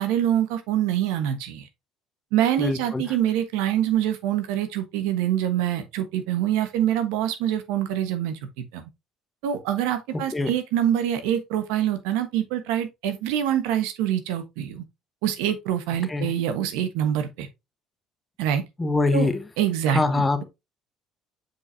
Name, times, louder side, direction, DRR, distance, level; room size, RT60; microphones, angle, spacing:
voice 1, 0.0-1.7 2.3-8.4 8.7-8.8 9.4-14.8 15.2-17.5 18.4-18.6 19.1-19.3 19.6-20.4, right 10 dB, 85° right, 1.2 m, -25 dB
voice 2, 2.6-3.0 10.1-10.5 16.1-16.3 18.8-19.4 19.9-20.4, left 3 dB, 20° left, 1.2 m, -24 dB
7.7 x 4.6 x 2.7 m
supercardioid pair, 90°, 0 cm